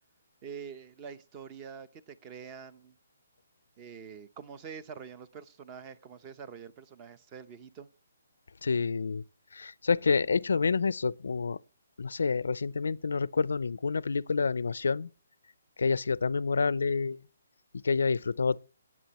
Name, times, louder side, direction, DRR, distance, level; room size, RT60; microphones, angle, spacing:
voice 1, 0.4-3.0 3.8-7.9, right 6 dB, 20° right, 0.7 m, -45 dB
voice 2, 8.6-9.2 9.5-11.6 12.0-15.1 15.8-17.2 17.8-18.6, left 4 dB, 85° left, 0.5 m, -28 dB
18.0 x 8.6 x 3.0 m
hypercardioid pair, 165°, 0 cm